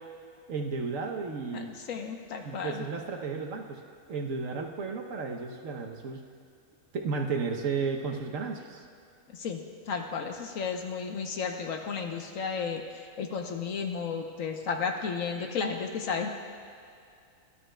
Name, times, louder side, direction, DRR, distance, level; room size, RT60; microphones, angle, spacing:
voice 1, 0.5-1.7 2.4-3.8 4.1-6.2 6.9-8.9, right 4 dB, 60° right, 2 dB, 1.1 m, -33 dB
voice 2, 1.5-2.8 9.3-9.6 9.9-16.3, left 5 dB, 65° left, 3 dB, 1.1 m, -33 dB
17.5 x 11.5 x 2.2 m, 2.5 s
omnidirectional pair, 1.6 m